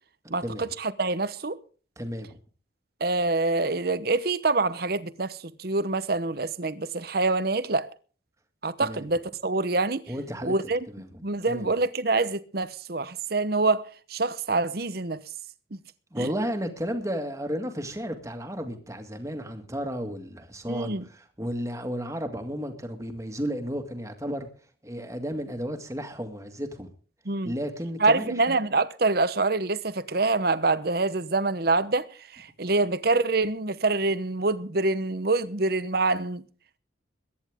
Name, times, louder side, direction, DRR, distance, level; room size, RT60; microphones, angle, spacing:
voice 1, 0.3-1.6 3.0-7.9 8.6-10.0 10.4-10.8 11.2-15.2 15.7-15.8 16.2-16.3 20.7-21.0 27.3-27.5 28.0-32.1 32.3-36.4, right 3 dB, 55° right, 1.0 m, -26 dB
voice 2, 2.0-2.4 8.8-9.1 10.1-10.5 10.9-11.2 11.5-11.7 16.1-24.5 24.8-26.9 27.5-28.6, equal, 15° right, 2.0 m, -33 dB
22.5 x 10.5 x 3.7 m
head